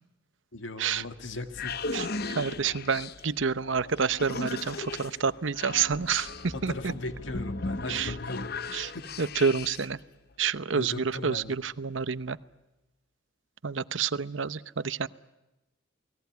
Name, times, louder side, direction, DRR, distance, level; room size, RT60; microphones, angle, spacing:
voice 1, 0.5-1.8 6.5-9.0 10.7-11.6, left 2 dB, 75° left, 9 dB, 2.0 m, -38 dB
sound 1, 1.2-10.0, left 3 dB, 50° left, 0.9 m, -37 dB
voice 2, 1.9-6.9 7.9-8.2 8.7-8.9 9.2-10.0 10.4-12.4 13.6-15.1, right 6 dB, 75° right, 16 dB, 0.8 m, -29 dB
29.5 x 19.5 x 9.4 m, 1.0 s
head